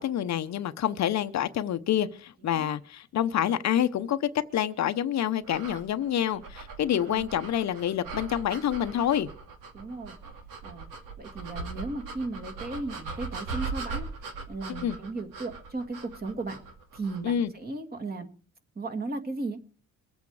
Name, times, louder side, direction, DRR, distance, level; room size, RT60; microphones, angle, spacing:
voice 1, 0.0-9.3 14.7-15.0 17.2-17.5, left 10 dB, 60° left, 0.8 m, -27 dB
sound 1, 5.4-17.3, right 4 dB, 90° right, 2.7 m, -40 dB
voice 2, 9.7-10.2 10.6-10.9 11.2-14.1 14.5-16.6 16.9-18.3 18.8-19.7, right 3 dB, 30° right, 2.2 m, -36 dB
23.0 x 8.4 x 4.8 m
cardioid pair, 120°, 31 cm